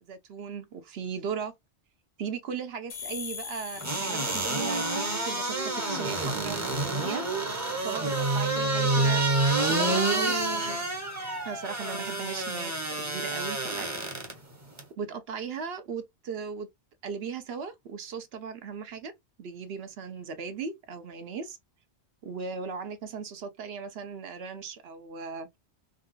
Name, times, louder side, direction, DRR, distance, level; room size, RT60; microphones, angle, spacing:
voice 1, 0.0-1.5 2.2-9.2 9.6-10.9 11.4-13.9 15.0-16.7 17.0-19.1 19.4-21.6 22.2-25.5, right 6 dB, 65° right, 0.9 m, -37 dB
sound 1, 2.9-6.5, left 6 dB, 85° left, 1.2 m, -43 dB
sound 2, 3.8-14.3 14.8-14.9, right 2 dB, 15° right, 0.8 m, -28 dB
3.8 x 2.4 x 2.3 m
omnidirectional pair, 1.2 m